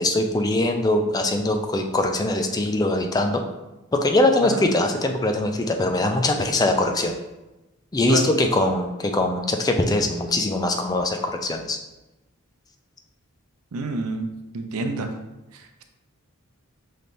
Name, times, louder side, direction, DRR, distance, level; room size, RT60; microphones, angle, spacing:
voice 1, 0.0-3.4 4.0-7.2 7.9-11.8, left 2 dB, 15° left, 4 dB, 0.3 m, -22 dB
voice 2, 13.7-14.3 14.5-15.1 15.5-15.8, right 3 dB, 80° right, 6 dB, 0.5 m, -28 dB
5.6 x 3.3 x 2.6 m, 1.0 s
head